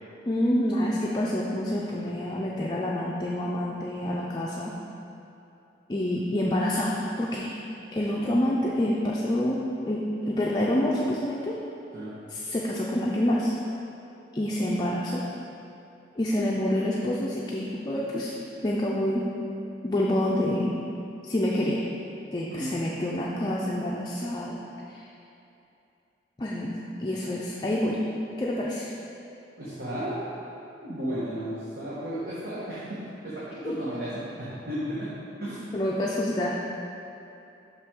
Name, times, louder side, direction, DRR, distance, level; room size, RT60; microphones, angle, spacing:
voice 1, 0.3-4.8 5.9-7.5 7.9-11.6 12.3-13.5 14.3-15.3 16.2-18.3 18.6-19.3 19.8-20.8 21.2-21.9 22.3-24.6 24.9-25.1 26.4-28.0 28.4-28.9 35.7-36.5, left 1 dB, 25° left, -4 dB, 0.4 m, -27 dB
voice 2, 29.6-30.4 30.8-35.1 35.4-35.8, equal, 55° right, -10 dB, 1.2 m, -34 dB
6.1 x 5.6 x 3.6 m, 2.8 s
head